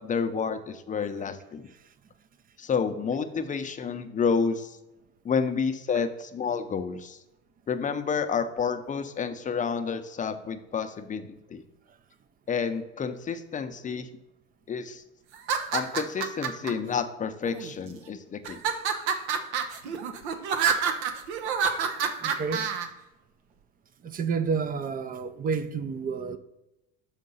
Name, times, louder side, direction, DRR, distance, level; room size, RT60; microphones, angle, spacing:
voice 1, 0.0-1.7 2.6-4.8 5.2-7.2 7.7-11.6 12.5-14.1 14.7-15.0 15.7-18.6, left 6 dB, 25° left, 0.6 m, -29 dB
sound 1, 15.3-16.7 17.4-18.0 18.4-22.9, right 6 dB, 80° right, 0.8 m, -28 dB
voice 2, 22.2-22.7 24.0-26.4, right 5 dB, 25° right, 0.5 m, -30 dB
6.5 x 3.7 x 5.4 m
hypercardioid pair, 85°, 33 cm